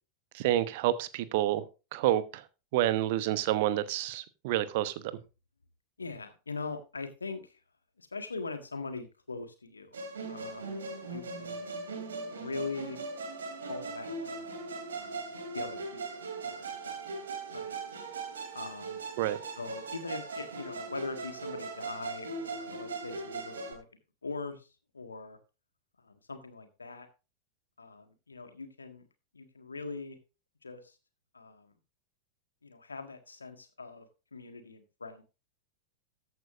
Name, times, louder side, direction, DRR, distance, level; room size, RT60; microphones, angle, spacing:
voice 1, 0.3-1.6 1.9-2.4 2.7-4.9 19.2-19.4, right 13 dB, 50° right, 0.9 m, -28 dB
voice 2, 6.0-7.6 8.0-9.9 10.3-11.8 12.3-13.0 13.7-14.6 14.9-17.0 17.5-17.8 18.5-19.0 19.6-23.8 24.2-25.4 26.0-27.1 27.8-29.1 29.3-30.2 30.6-31.0 31.3-31.7 32.6-34.1 34.3-35.2, left 4 dB, 75° left, 1.6 m, -42 dB
Musical instrument, 9.9-23.7, right 3 dB, 65° right, 2.8 m, -39 dB
14.0 x 9.3 x 2.5 m
figure-of-eight pair, 90°, 0 cm